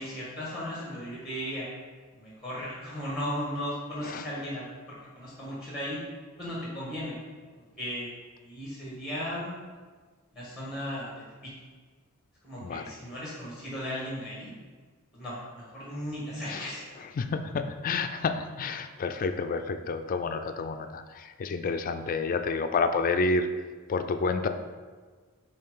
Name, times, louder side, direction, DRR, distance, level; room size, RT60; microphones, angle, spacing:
voice 1, 0.0-1.7 2.1-6.0 6.4-7.2 7.8-8.1 8.4-9.5 10.3-11.1 11.4-11.5 12.4-14.5 15.1-16.8, equal, 5° right, -7 dB, 1.4 m, -36 dB
voice 2, 12.6-12.9 16.5-16.7 17.0-23.5 23.9-24.5, left 4 dB, 40° left, 8 dB, 0.3 m, -29 dB
8.5 x 3.2 x 3.7 m, 1.5 s
head